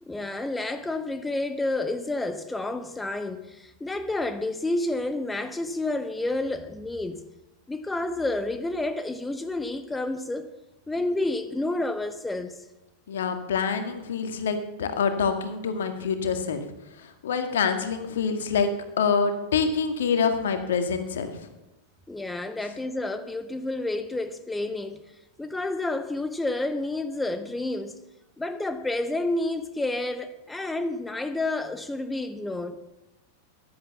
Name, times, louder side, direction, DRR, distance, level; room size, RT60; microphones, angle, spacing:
voice 1, 0.0-7.2 7.7-10.5 10.9-12.7 22.1-25.0 25.4-28.0 28.4-32.8, left 2 dB, 10° left, 1.0 m, -30 dB
voice 2, 13.1-16.6 17.0-21.5, left 5 dB, 60° left, 1.9 m, -26 dB
15.0 x 11.5 x 7.1 m
figure-of-eight pair, 90°, 0 cm